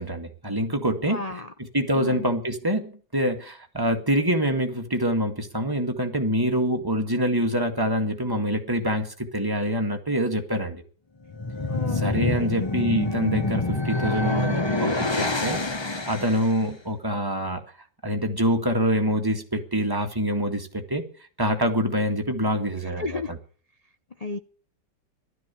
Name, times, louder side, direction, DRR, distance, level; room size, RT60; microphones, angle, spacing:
voice 1, 0.0-1.2 1.7-10.8 11.9-15.6 16.1-17.6 18.0-21.1 21.4-23.2, equal, 10° right, 3 dB, 1.9 m, -25 dB
voice 2, 1.0-1.5 1.9-2.3 11.6-12.0 12.4-12.6 22.8-23.3 24.2-24.4, left 3 dB, 75° left, 9 dB, 0.3 m, -33 dB
sound 1, 11.2-16.6, left 2 dB, 20° left, 0.8 m, -26 dB
15.5 x 12.5 x 7.1 m, 0.43 s
omnidirectional pair, 2.0 m